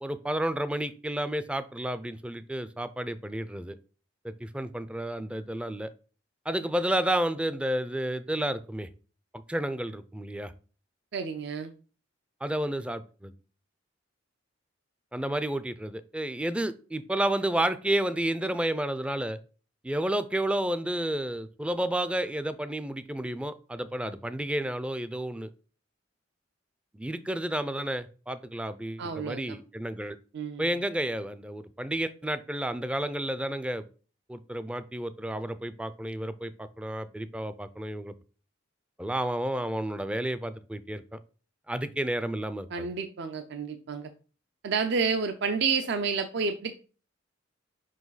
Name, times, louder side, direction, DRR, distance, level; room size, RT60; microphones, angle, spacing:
voice 1, 0.0-3.8 4.2-5.9 6.5-8.9 9.5-10.5 12.4-13.3 15.1-19.4 19.8-25.5 26.9-30.2 30.6-33.8 34.3-38.1 39.0-41.2 41.7-42.9, right 1 dB, 5° right, 13 dB, 0.4 m, -31 dB
voice 2, 11.1-11.7 29.0-29.6 30.3-30.7 42.7-44.1 44.6-46.7, right 5 dB, 60° right, 8 dB, 0.5 m, -30 dB
5.4 x 4.9 x 4.0 m, 0.37 s
head